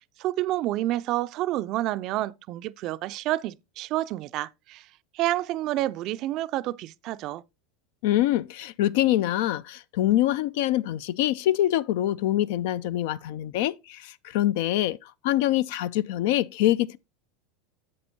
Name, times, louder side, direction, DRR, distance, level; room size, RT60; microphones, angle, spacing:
voice 1, 0.2-4.9 5.1-7.4, right 15 dB, 50° right, 0.4 m, -29 dB
voice 2, 8.0-17.0, left 14 dB, 70° left, 0.3 m, -25 dB
7.8 x 7.5 x 2.7 m
hypercardioid pair, 95°, 0 cm